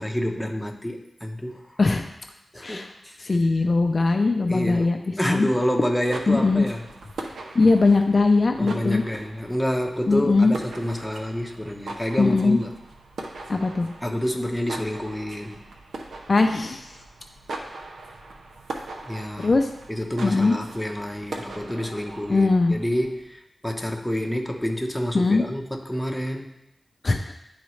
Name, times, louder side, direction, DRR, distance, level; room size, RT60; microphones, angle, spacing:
voice 1, 0.0-1.8 2.5-3.3 4.5-6.8 8.6-12.7 14.0-15.6 19.0-19.6 19.9-26.5, equal, 5° left, 1 dB, 0.9 m, -28 dB
voice 2, 2.6-2.9 3.2-5.0 5.2-5.5 6.3-6.7 7.5-9.0 10.1-10.6 12.2-12.6 13.5-13.9 16.3-16.9 19.4-19.7 20.2-20.5 22.3-22.7 25.1-25.4 27.0-27.3, left 3 dB, 50° left, 4 dB, 0.5 m, -20 dB
sound 1, 5.9-23.2, right 2 dB, 85° right, 0.7 m, -40 dB
10.5 x 4.0 x 3.2 m, 0.84 s
cardioid pair, 60°, 0 cm